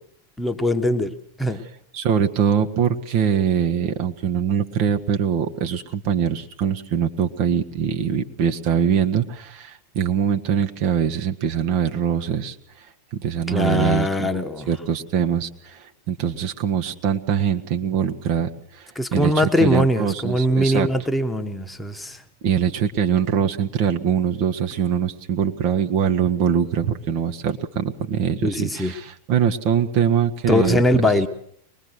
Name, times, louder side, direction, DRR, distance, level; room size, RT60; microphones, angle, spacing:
voice 1, 0.4-1.1 1.4-1.6 13.5-14.7 18.9-22.2 28.4-28.9 30.5-31.3, left 1 dB, 5° left, 5 dB, 1.4 m, -21 dB
voice 2, 1.9-12.5 13.1-15.8 16.1-18.8 19.1-20.9 22.4-31.1, right 8 dB, 45° right, 4 dB, 1.4 m, -23 dB
23.5 x 21.0 x 6.5 m, 0.67 s
figure-of-eight pair, 90°, 0 cm